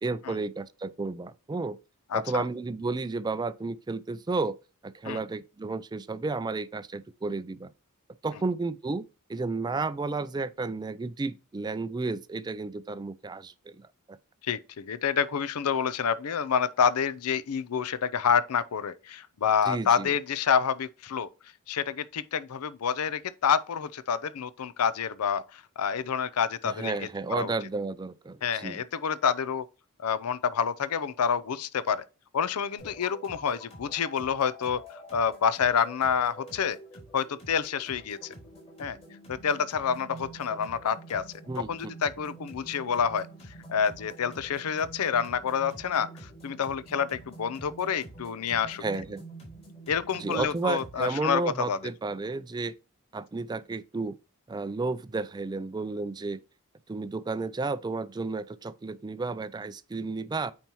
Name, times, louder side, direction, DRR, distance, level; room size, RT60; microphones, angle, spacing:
voice 1, 0.0-1.8 2.1-4.6 4.8-7.7 8.2-9.0 9.3-14.2 19.7-20.1 26.6-28.8 41.5-41.9 48.8-49.2 50.1-52.7 53.1-54.2 54.5-56.4 56.9-60.5, right 3 dB, 20° right, 0.3 m, -32 dB
voice 2, 2.1-2.4 5.0-5.2 14.5-21.3 21.7-27.5 28.4-29.7 30.0-32.0 32.3-34.8 35.1-36.8 37.1-38.2 38.8-39.0 39.3-41.2 41.7-43.3 43.7-48.8 49.9-51.4 51.7-51.8, left 7 dB, 80° left, 0.5 m, -28 dB
sound 1, 32.8-51.2, right 1 dB, 30° left, 3.9 m, -47 dB
9.0 x 4.4 x 3.0 m
head